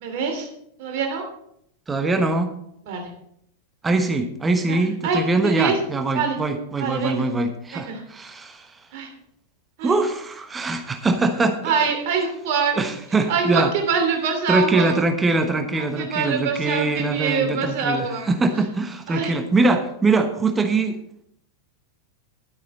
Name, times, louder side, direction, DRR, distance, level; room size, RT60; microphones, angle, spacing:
voice 1, 0.0-0.5 0.8-1.2 2.8-3.1 4.7-4.8 5.0-5.8 6.1-6.4 6.8-7.2 7.7-8.0 8.9-9.1 9.8-9.9 11.6-12.8 13.3-14.9 15.7-18.3 19.1-19.3, right 5 dB, 50° right, 3 dB, 2.8 m, -24 dB
voice 2, 1.9-2.5 3.8-8.7 9.8-11.7 12.7-13.7 14.5-21.0, right 3 dB, 15° right, 7 dB, 1.1 m, -22 dB
12.0 x 9.3 x 4.2 m, 0.73 s
figure-of-eight pair, 90°, 0 cm